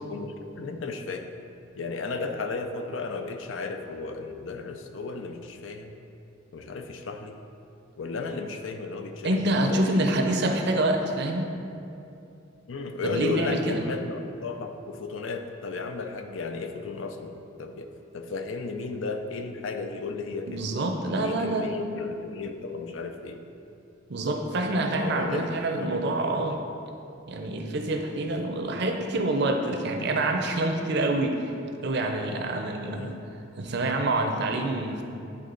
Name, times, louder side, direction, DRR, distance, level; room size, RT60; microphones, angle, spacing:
voice 1, 0.1-1.3 1.8-6.0 6.5-7.4 8.0-10.2 12.7-20.7 21.1-23.4 24.8-25.5 25.8-26.5 32.9-33.2, left 4 dB, 80° left, 6 dB, 0.5 m, -34 dB
voice 2, 9.2-11.5 13.0-13.8 20.5-21.8 24.1-26.6 27.3-31.5 31.8-33.1 33.6-35.0, right 2 dB, 60° right, 4 dB, 0.6 m, -26 dB
8.3 x 3.7 x 3.9 m, 2.7 s
head